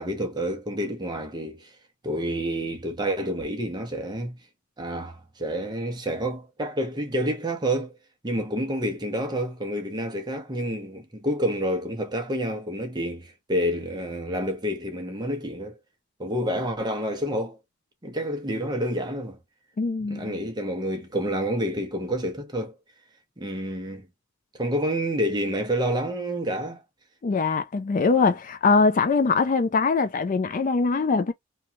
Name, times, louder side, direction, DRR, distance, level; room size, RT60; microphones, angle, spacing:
voice 1, 0.0-1.7 2.0-4.4 4.8-8.0 8.2-15.8 16.2-17.6 18.0-19.4 20.1-22.7 23.4-24.1 24.5-26.8, equal, 20° right, 0.6 m, -28 dB
voice 2, 19.8-20.3 27.2-31.3, left 4 dB, 35° left, 0.3 m, -22 dB
3.0 x 2.3 x 2.7 m
head